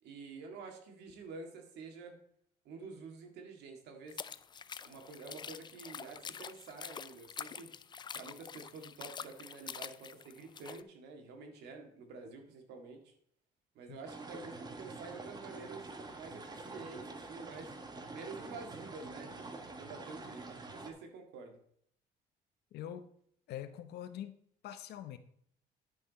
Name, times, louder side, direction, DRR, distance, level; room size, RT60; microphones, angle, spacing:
voice 1, 0.0-2.2 2.7-4.2 4.8-7.7 8.1-13.1 13.8-15.8 16.2-17.7 18.1-21.6, right 4 dB, 80° right, 4 dB, 2.0 m, -49 dB
sound 1, 4.1-10.8, left 7 dB, 25° left, 0.4 m, -46 dB
sound 2, 14.1-20.9, right 3 dB, 25° right, 1.3 m, -46 dB
voice 2, 22.7-23.1 23.5-24.4 24.6-25.2, left 10 dB, 75° left, 11 dB, 0.9 m, -44 dB
10.5 x 5.8 x 4.1 m, 0.65 s
cardioid pair, 110°, 17 cm